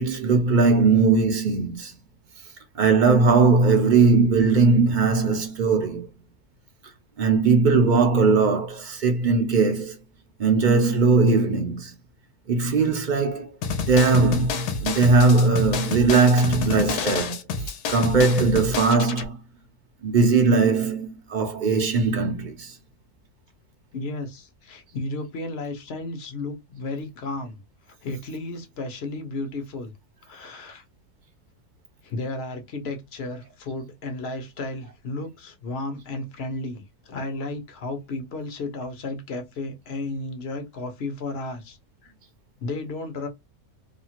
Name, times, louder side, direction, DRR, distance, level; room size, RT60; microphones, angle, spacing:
voice 1, 0.0-1.9 2.7-6.1 7.2-9.9 10.4-11.9 12.5-13.6 13.8-17.4 17.9-19.4 20.0-22.8, right 4 dB, 50° right, 0.6 m, -19 dB
sound 1, 13.6-19.3, left 5 dB, 85° left, 1.1 m, -29 dB
voice 2, 23.9-27.6 27.9-29.9 30.2-30.8 32.0-41.8 42.0-42.1 42.6-43.3, left 2 dB, 50° left, 0.9 m, -33 dB
2.8 x 2.4 x 2.8 m
omnidirectional pair, 1.6 m